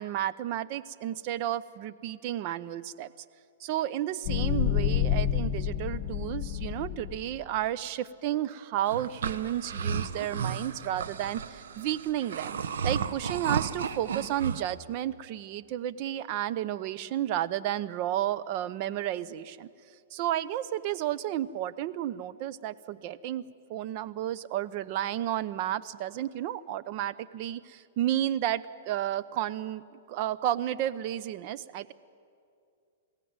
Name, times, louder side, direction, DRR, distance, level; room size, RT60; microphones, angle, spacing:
voice 1, 0.0-3.1 3.6-12.6 12.8-19.7 20.1-23.4 23.7-29.8 30.1-31.9, right 12 dB, 40° right, 16 dB, 0.7 m, -32 dB
sound 1, 4.2-7.4, left 10 dB, 35° left, 1.0 m, -29 dB
sound 2, 8.9-14.6, right 6 dB, 80° right, 1.1 m, -33 dB
21.5 x 16.5 x 9.6 m, 2.4 s
hypercardioid pair, 150°, 0 cm